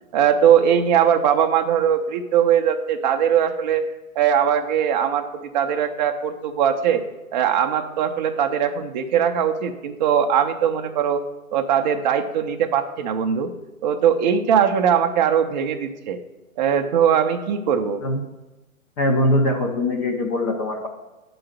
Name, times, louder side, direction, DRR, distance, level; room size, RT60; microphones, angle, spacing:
voice 1, 0.1-3.8 4.2-7.0 7.3-11.2 11.5-13.5 13.8-16.2 16.6-18.0, right 8 dB, 30° right, 5 dB, 0.5 m, -20 dB
voice 2, 19.0-20.9, left 1 dB, 20° left, 1 dB, 0.7 m, -21 dB
7.8 x 3.9 x 6.7 m, 1.1 s
hypercardioid pair, 140°, 42 cm